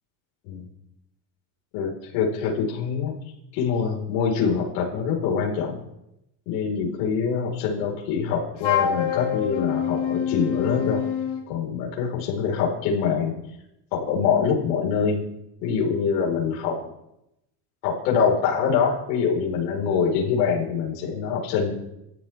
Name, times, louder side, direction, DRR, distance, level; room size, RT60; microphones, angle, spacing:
voice 1, 1.7-3.1 3.5-5.8 6.5-11.0 11.5-13.4 13.9-15.2 15.6-16.8 17.8-21.7, left 6 dB, 80° left, -2 dB, 5.0 m, -24 dB
Wind instrument woodwind instrument, 8.6-11.5, left 9 dB, 55° left, 4.1 m, -26 dB
28.5 x 13.5 x 3.6 m, 0.85 s
supercardioid pair, 90°, 49 cm